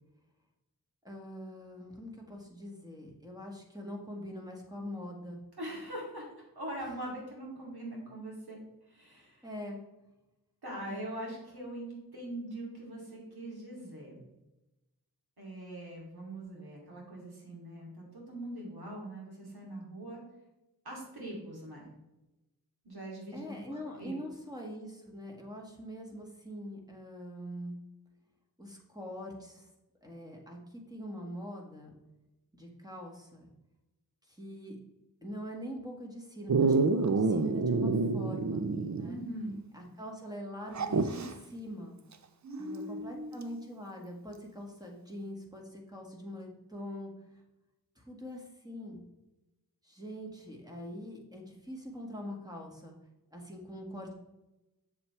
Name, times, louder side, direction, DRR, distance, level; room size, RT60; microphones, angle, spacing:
voice 1, 1.0-5.5 9.1-9.8 10.9-11.0 23.3-27.8 28.6-29.7 30.0-32.0 32.5-33.5 34.3-34.8 35.2-38.7 39.0-39.2 39.7-42.0 42.6-47.1 48.0-49.0 49.8-53.0 53.3-54.1, equal, 10° right, 0 dB, 1.8 m, -43 dB
voice 2, 5.6-6.3 6.5-8.6 8.9-9.5 10.6-14.2 15.4-20.2 20.8-21.8 22.8-24.2 39.0-39.5 42.4-43.4, right 1 dB, 80° right, -3 dB, 2.8 m, -42 dB
Dog, 36.5-39.2 39.5-39.6 40.7-41.3 43.4-43.5, right 4 dB, 50° right, 0.6 m, -28 dB
7.2 x 7.1 x 3.3 m, 0.98 s
wide cardioid pair, 55°, 37 cm